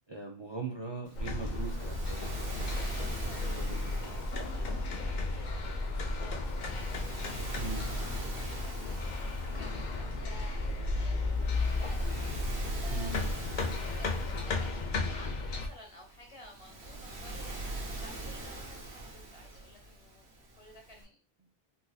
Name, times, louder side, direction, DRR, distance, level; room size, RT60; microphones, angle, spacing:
voice 1, 0.1-2.5 3.5-4.2 7.6-7.9 12.9-13.2, right 4 dB, 40° right, -1 dB, 0.4 m, -40 dB
sound 1, 1.1-15.7, left 2 dB, 55° left, 0.6 m, -34 dB
Waves surf, 1.1-21.0, right 2 dB, 85° right, 1.2 m, -43 dB
voice 2, 3.1-3.4 4.5-20.3 20.5-21.2, left 1 dB, 35° left, 2 dB, 0.9 m, -54 dB
sound 2, 3.3-10.7, left 4 dB, 75° left, 1.0 m, -53 dB
3.9 x 2.6 x 2.3 m, 0.33 s
omnidirectional pair, 1.1 m